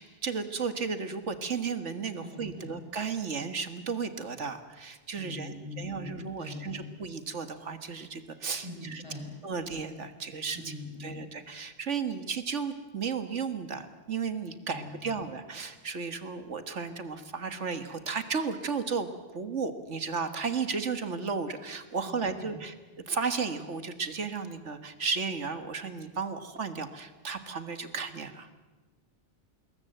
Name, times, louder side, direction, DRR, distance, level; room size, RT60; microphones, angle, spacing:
voice 1, 0.0-9.0 9.4-10.6 11.0-22.7 23.1-28.6, right 5 dB, 75° right, 9 dB, 1.9 m, -34 dB
voice 2, 2.2-2.8 5.2-6.9 8.6-9.4 10.5-11.3 14.7-15.3 22.0-22.6, left 2 dB, 25° right, -2 dB, 7.8 m, -42 dB
27.0 x 21.0 x 8.0 m, 1.3 s
omnidirectional pair, 1.2 m